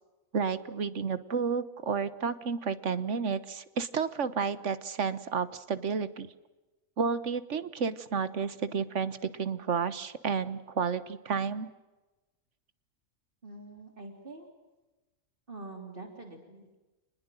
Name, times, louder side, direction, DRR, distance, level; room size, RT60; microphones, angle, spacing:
voice 1, 0.3-6.3 7.0-11.7, right 6 dB, 60° right, 14 dB, 1.5 m, -31 dB
voice 2, 13.4-14.5 15.5-16.8, right 2 dB, 40° right, 3 dB, 3.7 m, -45 dB
28.0 x 20.5 x 7.6 m, 1.1 s
omnidirectional pair, 1.4 m